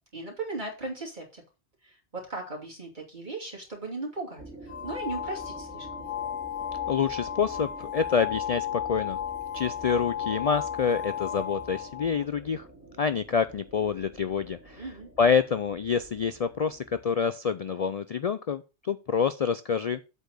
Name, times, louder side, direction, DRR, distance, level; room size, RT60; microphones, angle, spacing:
voice 1, 0.1-1.4 1.8-6.1 14.8-15.1, right 3 dB, 45° right, -3 dB, 3.0 m, -37 dB
sound 1, 4.4-17.0, right 1 dB, 10° right, 3.0 m, -48 dB
sound 2, 4.7-12.2, left 10 dB, 85° left, 1.1 m, -34 dB
voice 2, 6.9-9.2 9.5-12.7 13.0-14.8 15.2-20.0, left 6 dB, 65° left, 12 dB, 0.3 m, -27 dB
8.2 x 4.1 x 6.6 m, 0.30 s
omnidirectional pair, 1.2 m